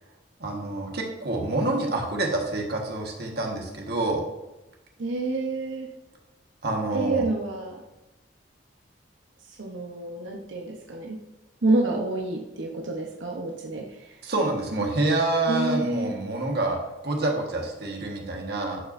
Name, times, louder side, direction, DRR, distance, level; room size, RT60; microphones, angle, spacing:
voice 1, 0.4-4.2 6.6-7.2 14.2-16.8 17.0-18.8, right 2 dB, 55° right, 0 dB, 1.5 m, -27 dB
voice 2, 5.0-5.9 6.9-7.8 9.5-11.2 11.6-14.2 15.5-16.1, right 2 dB, 85° right, 0 dB, 0.9 m, -28 dB
11.0 x 5.6 x 2.6 m, 0.99 s
head